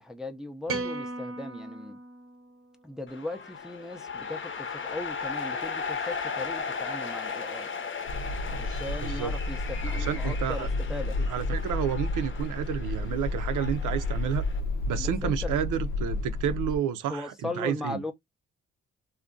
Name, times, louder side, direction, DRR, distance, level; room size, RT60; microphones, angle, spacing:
voice 1, 0.0-2.0 2.8-7.7 8.5-11.2 15.0-15.5 17.1-18.1, left 2 dB, ahead, 0.4 m, -38 dB
sound 1, 0.7-3.1, right 3 dB, 45° right, 0.6 m, -37 dB
sound 2, 3.1-14.6, left 5 dB, 40° left, 0.7 m, -37 dB
sound 3, 8.1-16.8, left 2 dB, 85° left, 0.7 m, -31 dB
voice 2, 9.9-10.7 11.3-14.4 14.9-18.0, right 9 dB, 90° right, 0.6 m, -30 dB
2.5 x 2.2 x 3.6 m
cardioid pair, 110°, 30 cm